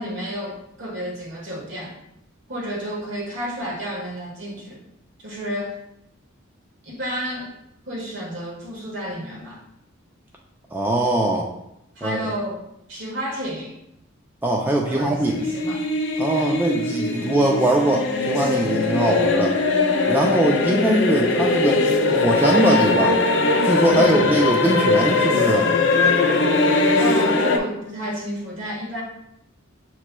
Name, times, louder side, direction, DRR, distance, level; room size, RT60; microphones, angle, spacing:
voice 1, 0.0-1.9 2.5-4.8 5.2-5.8 6.8-7.5 7.8-9.6 11.9-12.6 12.9-13.8 14.7-15.8 16.3-16.5 20.1-20.5 23.9-24.2 26.9-29.0, equal, 65° right, -3 dB, 1.3 m, -31 dB
voice 2, 10.7-11.5 12.0-12.2 14.4-15.5 16.2-19.5 20.1-21.8 22.1-23.2 23.6-25.7, right 1 dB, 10° right, -1 dB, 0.3 m, -21 dB
sound 1, 15.2-27.6, left 3 dB, 60° left, 0.5 m, -20 dB
6.8 x 3.0 x 2.2 m, 0.82 s
head